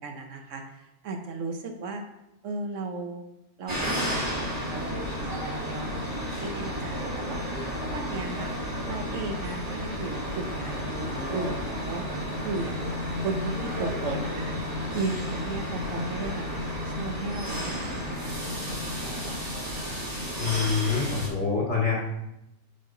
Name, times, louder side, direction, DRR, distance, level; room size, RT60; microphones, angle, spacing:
voice 1, 0.0-2.0 2.4-3.2 3.6-4.1 4.4-6.0 6.4-7.4 7.9-8.5 8.8-12.1 12.4-12.9 13.2-16.5 16.8-19.6, right 3 dB, 70° right, 4 dB, 1.1 m, -36 dB
sound 1, 3.7-21.3, equal, 30° right, 1.4 m, -32 dB
voice 2, 20.4-22.0, left 5 dB, 60° left, -5 dB, 2.4 m, -26 dB
5.6 x 5.4 x 3.9 m, 0.86 s
omnidirectional pair, 1.4 m